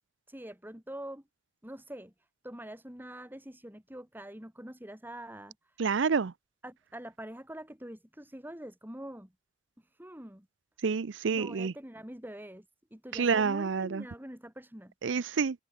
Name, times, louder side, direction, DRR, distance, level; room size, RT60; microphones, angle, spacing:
voice 1, 0.3-1.2 1.6-5.8 6.6-9.3 9.8-10.5 11.3-12.7 12.9-14.9, right 1 dB, 10° right, 3.8 m, -45 dB
voice 2, 5.8-6.3 10.8-11.7 13.1-14.0 15.0-15.6, right 5 dB, 70° right, 0.5 m, -28 dB
open air
head